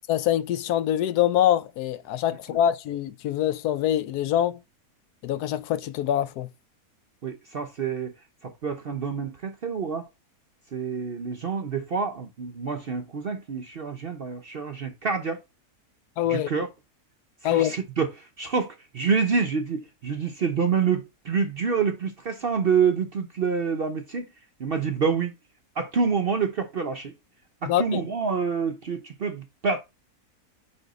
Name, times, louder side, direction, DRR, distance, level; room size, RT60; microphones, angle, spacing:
voice 1, 0.1-4.6 5.2-6.5 16.2-16.5 17.4-17.7 27.7-28.0, left 11 dB, 75° left, 1.1 m, -24 dB
voice 2, 7.2-8.1 8.4-10.1 10.7-15.4 16.3-16.7 17.4-24.3 24.6-25.3 25.8-27.1 27.6-29.8, right 5 dB, 50° right, 0.7 m, -27 dB
9.5 x 3.6 x 4.0 m
omnidirectional pair, 1.7 m